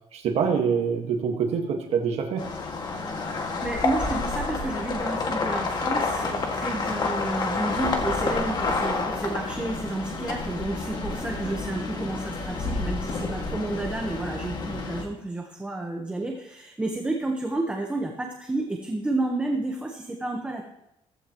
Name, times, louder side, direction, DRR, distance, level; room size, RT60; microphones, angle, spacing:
voice 1, 0.1-2.5, right 6 dB, 60° right, 3 dB, 1.7 m, -25 dB
sound 1, 2.4-15.0, left 3 dB, 35° left, 2.0 m, -29 dB
voice 2, 3.6-20.6, right 2 dB, 10° right, 1 dB, 1.2 m, -31 dB
16.0 x 15.5 x 3.1 m, 0.85 s
cardioid pair, 165°, 12 cm